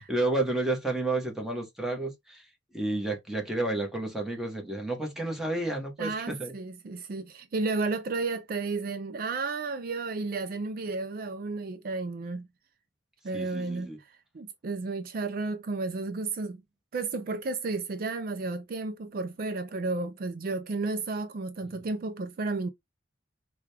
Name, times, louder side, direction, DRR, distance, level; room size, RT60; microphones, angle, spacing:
voice 1, 0.0-2.4 2.7-6.5 13.3-14.0, right 2 dB, ahead, 1.1 m, -31 dB
voice 2, 6.0-12.5 13.2-16.6 16.9-22.7, right 3 dB, 50° right, 0.4 m, -32 dB
4.8 x 2.3 x 3.2 m
head